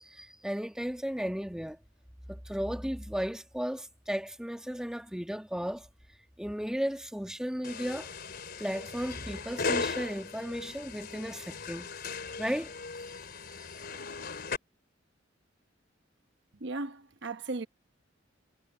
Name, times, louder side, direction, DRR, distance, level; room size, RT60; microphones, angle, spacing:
voice 1, 0.0-1.8 2.3-5.9 6.4-8.1 8.6-11.9 12.4-12.7, equal, 5° right, 1.4 m, -35 dB
sound 1, 7.6-14.6, left 4 dB, 55° left, 3.8 m, -37 dB
voice 2, 16.6-17.7, right 3 dB, 65° right, 1.0 m, -36 dB
head